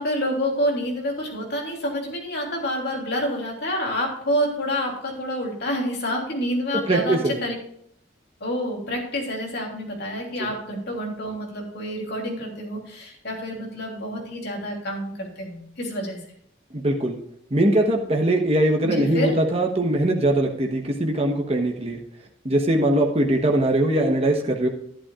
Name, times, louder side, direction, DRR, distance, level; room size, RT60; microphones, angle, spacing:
voice 1, 0.0-7.5 8.4-16.2 18.8-19.3, equal, 60° left, 0 dB, 3.2 m, -28 dB
voice 2, 6.9-7.4 10.4-10.5 16.7-17.2 17.5-22.0 22.4-24.7, right 1 dB, 30° right, 1 dB, 1.1 m, -21 dB
12.0 x 11.5 x 2.4 m, 0.69 s
head